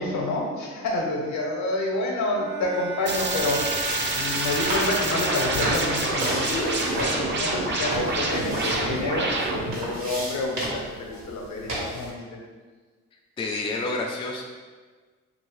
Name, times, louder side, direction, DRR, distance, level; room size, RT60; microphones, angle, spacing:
voice 1, 0.0-3.8 4.1-12.4, left 2 dB, 65° left, 0 dB, 0.8 m, -28 dB
Bowed string instrument, 2.3-6.8, right 4 dB, 80° right, 0.5 m, -35 dB
sound 1, 3.1-9.8, right 2 dB, 40° right, 0.6 m, -27 dB
sound 2, 3.2-12.1, right 1 dB, 65° right, 1.3 m, -34 dB
voice 2, 13.4-14.4, left 2 dB, 20° left, 0 dB, 0.3 m, -29 dB
2.8 x 2.7 x 3.1 m, 1.4 s
cardioid pair, 90°, 30 cm